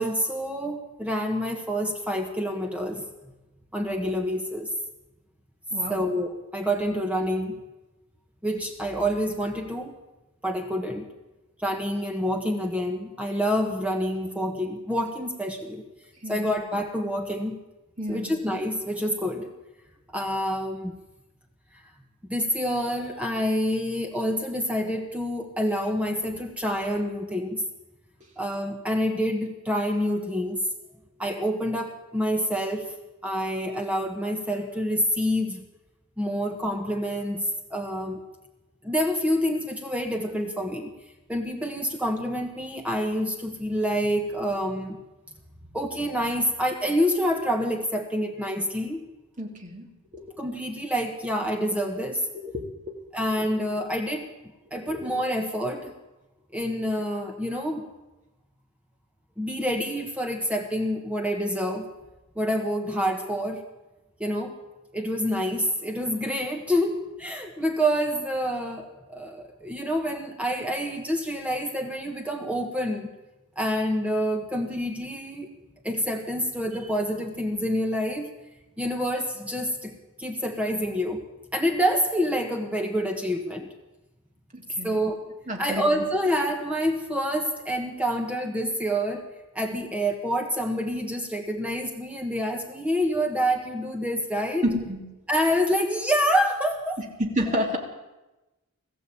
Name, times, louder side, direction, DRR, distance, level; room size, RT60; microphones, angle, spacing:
voice 1, 0.0-3.0 3.7-4.7 5.9-7.6 8.4-9.9 10.4-11.1 11.6-15.8 16.2-17.6 18.1-19.5 20.1-20.9 22.3-27.6 28.4-30.6 31.2-32.9 33.2-35.6 36.2-38.2 38.8-40.9 41.3-45.0 45.7-49.0 50.4-52.3 53.1-54.3 54.7-55.9 56.5-57.8 59.4-61.9 62.3-63.6 64.2-64.5 64.9-73.1 73.5-75.5 75.8-78.3 78.8-81.2 81.5-83.7 84.8-85.2 85.6-89.2 89.5-94.6 95.3-97.0 97.5-97.6, equal, 5° right, 3 dB, 1.7 m, -27 dB
voice 2, 5.7-6.0 16.2-16.5 18.0-18.3 49.4-49.8 50.1-50.2 52.4-52.6 54.9-55.1 84.5-85.0 85.5-86.0 94.6-95.0 97.2-97.8, equal, 35° right, 1 dB, 3.3 m, -30 dB
21.0 x 15.0 x 8.7 m, 1.0 s
head